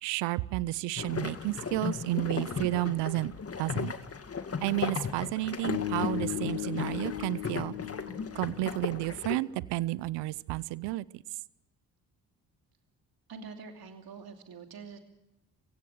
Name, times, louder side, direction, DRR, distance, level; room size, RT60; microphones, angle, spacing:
voice 1, 0.0-3.9 4.6-7.7 8.3-11.2, right 18 dB, 70° right, 21 dB, 0.7 m, -31 dB
sound 1, 1.0-9.4, left 5 dB, 35° left, 2.0 m, -36 dB
Bass guitar, 5.7-9.8, left 13 dB, 85° left, 1.6 m, -37 dB
voice 2, 13.3-15.0, right 5 dB, 55° right, 5 dB, 2.8 m, -45 dB
29.0 x 16.0 x 6.7 m, 0.89 s
hypercardioid pair, 50°, 43 cm